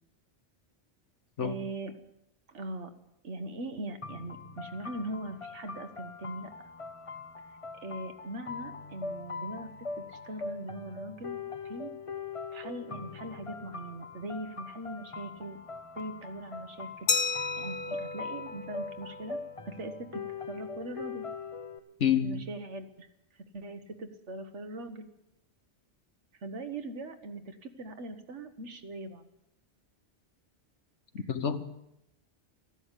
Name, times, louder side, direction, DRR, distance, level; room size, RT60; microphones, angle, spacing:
voice 1, 1.4-2.0 2.5-2.9 3.2-6.7 7.8-9.7 10.0-11.9 12.5-15.6 15.9-17.1 17.6-19.4 19.6-21.3 22.2-23.1 23.5-25.1 26.4-29.3, right 2 dB, 80° right, 1.6 m, -41 dB
sound 1, 4.0-21.8, left 4 dB, 30° left, 0.9 m, -42 dB
Glass, 17.1-19.5, left 4 dB, 50° left, 1.2 m, -33 dB
voice 2, 22.0-22.5 31.3-31.6, left 8 dB, 80° left, 1.5 m, -28 dB
15.0 x 12.0 x 8.2 m
omnidirectional pair, 1.2 m